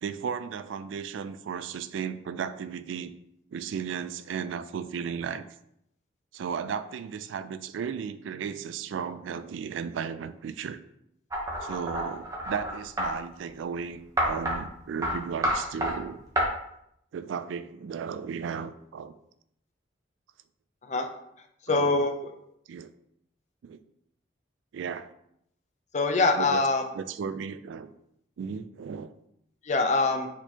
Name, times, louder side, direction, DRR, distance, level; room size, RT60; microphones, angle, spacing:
voice 1, 0.0-3.1 3.5-5.5 6.3-10.8 11.6-16.2 17.1-19.1 21.7-22.0 22.7-22.9 23.6-23.8 24.7-25.1 26.4-26.7 26.9-27.9 28.4-29.1, right 6 dB, 75° right, 12 dB, 0.3 m, -35 dB
sound 1, 11.3-13.1 14.2-14.6 15.0-15.2 15.4-15.9 16.4-16.5, equal, 15° right, 0.8 m, -28 dB
voice 2, 21.7-22.3 25.9-26.8 29.6-30.3, left 3 dB, 35° left, 5 dB, 0.5 m, -24 dB
4.3 x 4.3 x 2.8 m, 0.76 s
head